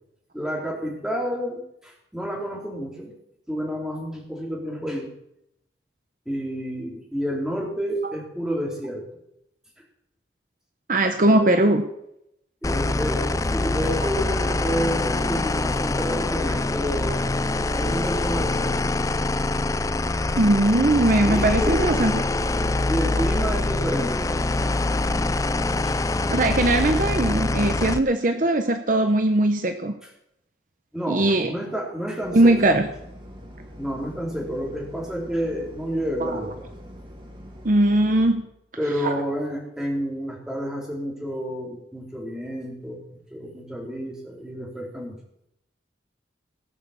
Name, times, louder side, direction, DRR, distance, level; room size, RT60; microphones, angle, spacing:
voice 1, 0.3-3.1 3.5-5.1 6.2-9.0 11.2-11.4 12.6-17.1 17.7-18.8 21.2-21.8 22.9-24.5 25.8-26.0 30.9-32.5 33.8-36.7 38.8-43.0 43.3-45.2, equal, 5° right, -2 dB, 3.2 m, -29 dB
voice 2, 10.9-11.8 20.4-22.1 22.4-22.5 26.3-29.9 31.1-31.5 32.3-32.9 36.2-36.4 37.6-38.4 39.0-39.2, right 1 dB, 45° right, 7 dB, 0.9 m, -20 dB
sound 1, 12.6-28.0, left 2 dB, 20° left, 0.4 m, -24 dB
sound 2, 32.2-38.3, equal, 30° right, 2.3 m, -43 dB
18.0 x 6.7 x 7.1 m, 0.79 s
head